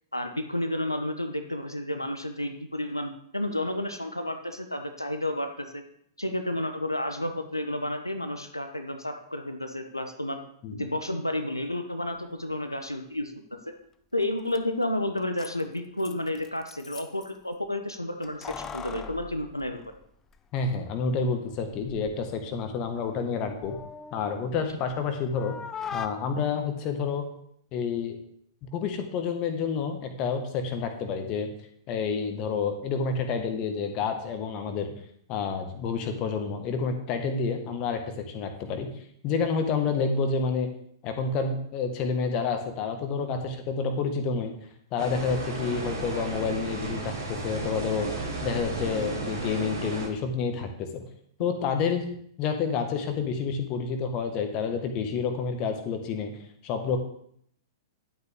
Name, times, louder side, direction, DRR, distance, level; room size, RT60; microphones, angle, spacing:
voice 1, 0.1-5.8 6.2-10.4 10.7-13.3 13.7-13.8 14.1-19.9, left 1 dB, 90° left, 6 dB, 1.0 m, -31 dB
Keys jangling, 14.2-14.3 14.5-14.6 15.2-17.3 18.2-20.4 20.7-20.8 21.7-22.2 22.6-25.0 25.3-26.1, left 6 dB, 20° left, 0.7 m, -41 dB
voice 2, 20.5-23.8 24.1-25.6 25.9-27.3 27.7-28.2 28.7-31.5 31.9-34.9 35.3-38.9 39.2-40.7 41.0-44.5 44.9-48.1 48.4-51.0 51.4-52.1 52.4-56.3 56.6-57.0, left 5 dB, 35° left, 5 dB, 1.7 m, -29 dB
sound 1, 45.0-50.1, right 2 dB, 60° right, 4.8 m, -34 dB
11.5 x 8.1 x 3.7 m, 0.68 s
figure-of-eight pair, 105°, 2 cm